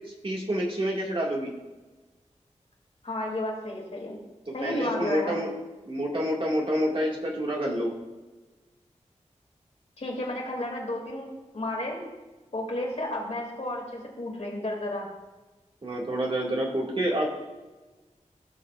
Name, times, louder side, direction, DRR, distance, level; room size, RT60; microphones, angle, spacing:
voice 1, 0.2-1.5 4.5-5.5 5.9-7.9 15.8-17.3, equal, 45° right, -2 dB, 2.0 m, -28 dB
voice 2, 3.0-4.2 4.5-5.4 10.0-11.3 11.5-12.1 12.5-15.1, left 1 dB, 60° left, -1 dB, 2.6 m, -32 dB
16.5 x 6.7 x 2.5 m, 1.2 s
wide cardioid pair, 80°, 13 cm